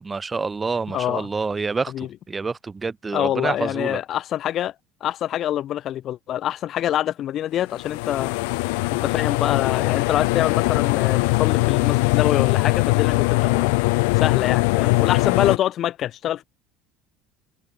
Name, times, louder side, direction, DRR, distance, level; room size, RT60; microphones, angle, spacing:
voice 1, 0.0-4.0, right 4 dB, 25° right, 2.4 m, -27 dB
voice 2, 0.9-1.3 1.9-2.1 3.1-4.7 5.0-8.3 8.9-13.7 14.1-16.4, left 11 dB, 50° left, 2.2 m, -25 dB
sound 1, 7.7-15.6, left 28 dB, 75° left, 0.6 m, -21 dB
hypercardioid pair, 75°, 0 cm